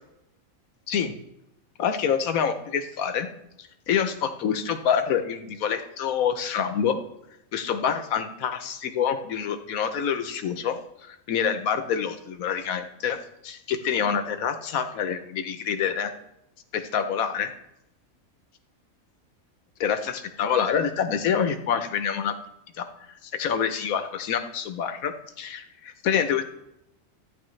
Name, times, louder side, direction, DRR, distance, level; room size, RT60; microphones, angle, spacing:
voice 1, 1.8-3.3 3.6-7.0 7.5-13.2 13.4-16.1 16.7-17.5 19.8-22.4 22.8-22.9 23.2-26.4, left 7 dB, 90° left, 9 dB, 1.3 m, -26 dB
13.5 x 9.5 x 3.2 m, 0.85 s
omnidirectional pair, 1.4 m